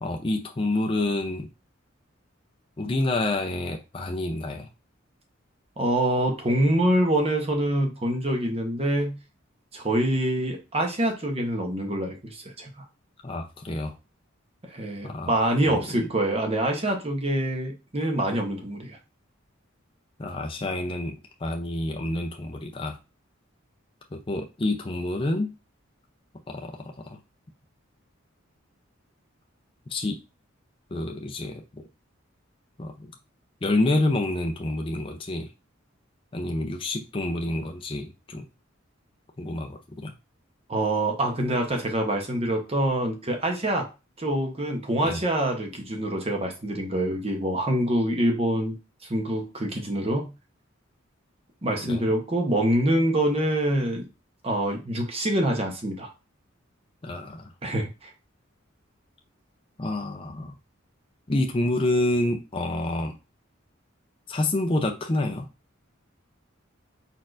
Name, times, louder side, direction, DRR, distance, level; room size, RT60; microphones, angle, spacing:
voice 1, 0.0-1.5 2.8-4.7 13.2-14.0 15.0-15.3 15.6-16.1 20.2-23.0 24.1-25.5 26.5-27.2 29.9-30.2 30.9-31.6 32.8-33.1 33.6-35.5 36.3-38.4 39.4-40.1 45.0-45.2 51.8-52.1 57.0-57.5 59.8-60.6 61.3-63.2 64.3-65.5, left 2 dB, 25° left, 3 dB, 0.5 m, -28 dB
voice 2, 5.8-9.2 9.7-12.8 14.7-19.0 40.7-43.9 44.2-48.8 49.0-50.3 51.6-54.1 54.4-56.1 57.6-58.1, right 1 dB, 30° right, 2 dB, 0.9 m, -25 dB
4.5 x 4.3 x 2.5 m, 0.29 s
head